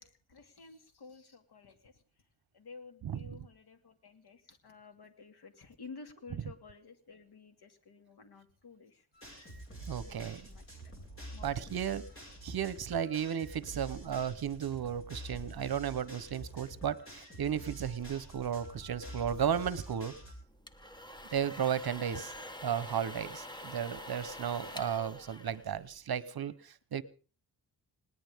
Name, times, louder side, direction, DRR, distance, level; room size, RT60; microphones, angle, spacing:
voice 1, 0.0-2.0 2.5-9.1 9.9-10.9 11.3-11.7 24.4-24.8, left 4 dB, 65° left, 7 dB, 2.5 m, -53 dB
voice 2, 3.0-3.4 9.9-10.4 11.4-12.1 12.4-20.1 21.3-22.3 22.6-27.0, right 8 dB, 60° right, 16 dB, 1.0 m, -34 dB
sound 1, 9.1-20.3, right 1 dB, 30° left, 5.4 m, -47 dB
sound 2, 20.4-26.2, left 1 dB, 10° left, 1.0 m, -46 dB
20.0 x 19.0 x 3.7 m, 0.38 s
wide cardioid pair, 160°, 42 cm